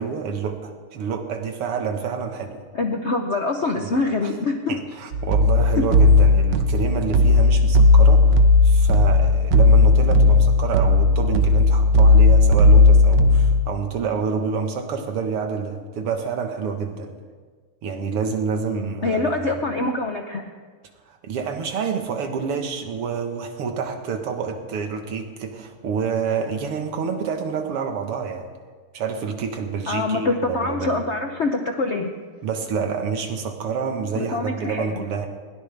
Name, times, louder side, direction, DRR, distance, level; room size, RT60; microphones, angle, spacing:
voice 1, 0.0-2.6 3.7-3.9 4.2-4.3 4.7-17.1 17.8-19.4 21.1-28.5 28.9-31.0 32.4-35.3, right 6 dB, 90° right, 5 dB, 2.4 m, -28 dB
voice 2, 2.7-4.8 5.8-5.9 19.0-20.4 29.9-32.1 34.1-34.9, left 3 dB, 65° left, 4 dB, 0.6 m, -24 dB
sound 1, 5.1-13.6, left 2 dB, 65° right, 1.4 m, -15 dB
21.0 x 17.0 x 3.5 m, 1.5 s
omnidirectional pair, 2.4 m